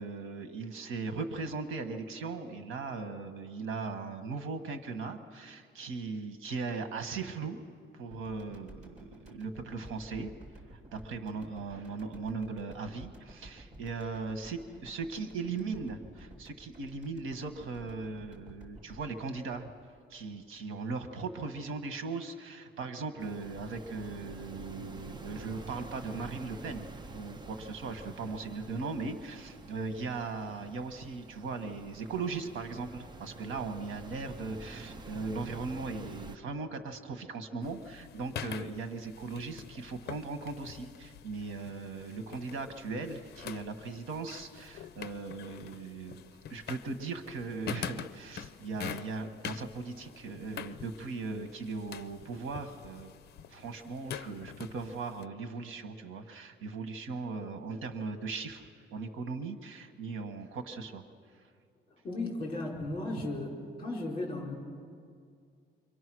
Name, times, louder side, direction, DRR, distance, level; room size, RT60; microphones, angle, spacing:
voice 1, 0.0-7.6 7.9-10.3 10.7-19.7 20.1-46.2 46.5-53.1 53.5-61.0, right 4 dB, 90° right, 8 dB, 1.7 m, -38 dB
sound 1, 8.1-20.6, right 1 dB, 35° right, 3.2 m, -53 dB
sound 2, 23.2-36.4, right 3 dB, 20° right, 0.7 m, -47 dB
sound 3, 37.6-55.3, left 8 dB, 55° left, 0.7 m, -45 dB
voice 2, 61.9-63.5 63.8-64.5, left 2 dB, 25° left, -1 dB, 5.2 m, -35 dB
28.0 x 24.0 x 6.3 m, 2.2 s
cardioid pair, 165°, 20 cm